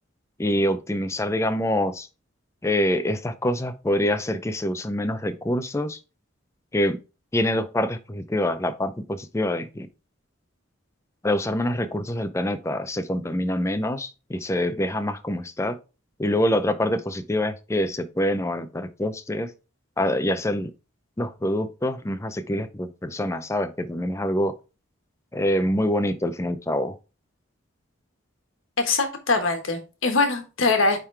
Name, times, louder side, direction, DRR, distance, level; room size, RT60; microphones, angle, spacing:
voice 1, 0.4-2.1 2.6-6.0 6.7-7.0 7.3-9.9 11.2-15.8 16.2-19.5 20.0-20.7 21.2-24.5 25.3-26.9, left 1 dB, 15° left, 0.5 m, -25 dB
voice 2, 28.8-31.0, left 3 dB, 70° left, 1.4 m, -22 dB
9.0 x 3.7 x 3.3 m
head